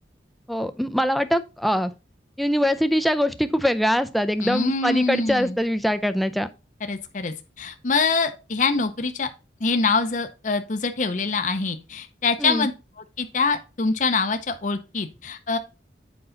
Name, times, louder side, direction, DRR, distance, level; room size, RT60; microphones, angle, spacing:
voice 1, 0.5-1.9 2.4-6.5 12.4-12.7, equal, ahead, 0.5 m, -23 dB
voice 2, 4.4-5.6 6.8-9.3 9.6-12.7 13.2-15.6, left 4 dB, 45° left, 0.7 m, -24 dB
8.0 x 5.5 x 3.9 m
head